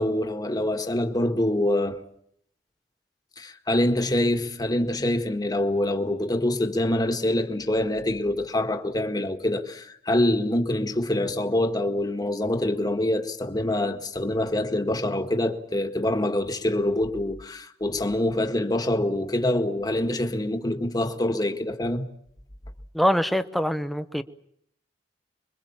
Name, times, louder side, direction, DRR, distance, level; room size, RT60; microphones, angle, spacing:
voice 1, 0.0-2.0 3.4-22.1, left 1 dB, 20° left, 1.8 m, -25 dB
voice 2, 22.9-24.2, equal, ahead, 1.0 m, -24 dB
26.5 x 23.0 x 7.3 m
head